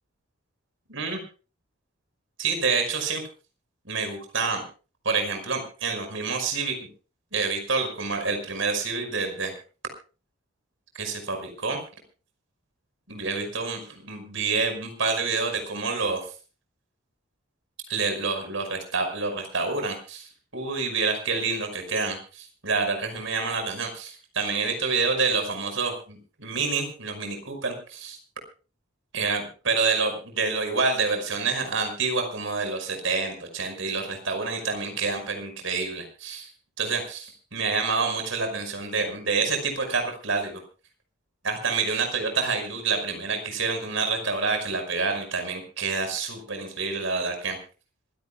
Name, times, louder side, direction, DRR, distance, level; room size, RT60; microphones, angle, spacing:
voice 1, 0.9-1.2 2.4-3.2 3.9-4.6 5.0-6.8 7.3-9.5 10.9-11.8 13.1-16.2 17.9-20.3 20.5-28.2 29.1-36.5 36.8-40.6 41.4-47.6, right 4 dB, 70° right, 5 dB, 5.5 m, -28 dB
26.5 x 16.5 x 2.4 m, 0.35 s
head